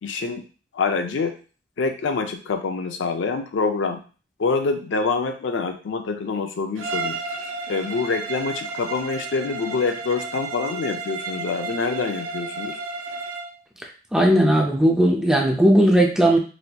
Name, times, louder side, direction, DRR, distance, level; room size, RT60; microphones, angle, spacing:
voice 1, 0.0-0.4 0.7-1.4 1.8-4.0 4.4-7.2 7.7-12.8, left 4 dB, 65° left, 7 dB, 0.4 m, -26 dB
Bowed string instrument, 6.7-13.6, right 3 dB, 85° right, 0.5 m, -32 dB
voice 2, 14.1-16.4, right 1 dB, 5° right, 1 dB, 0.4 m, -17 dB
4.2 x 2.6 x 2.2 m, 0.37 s
head